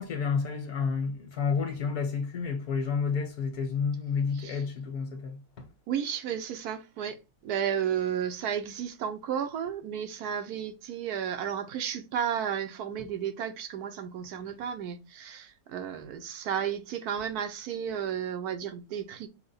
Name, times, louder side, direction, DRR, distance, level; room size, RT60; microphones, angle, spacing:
voice 1, 0.0-5.7, left 5 dB, 75° left, 1.6 m, -30 dB
voice 2, 5.9-19.3, right 8 dB, 80° right, 1.2 m, -33 dB
5.7 x 2.1 x 4.0 m
omnidirectional pair, 1.6 m